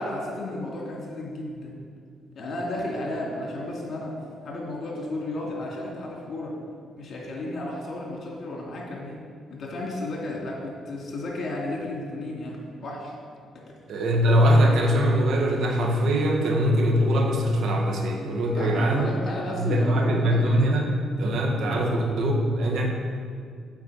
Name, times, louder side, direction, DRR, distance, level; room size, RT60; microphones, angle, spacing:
voice 1, 0.0-1.7 2.3-4.1 4.4-6.5 7.0-9.2 9.5-13.1 18.4-20.7 21.6-21.9, left 1 dB, 55° left, -2 dB, 2.7 m, -33 dB
voice 2, 13.9-19.1 19.5-20.9 21.2-22.9, equal, 70° right, 1 dB, 1.6 m, -22 dB
8.1 x 5.7 x 7.5 m, 2.1 s
cardioid pair, 90°, 0 cm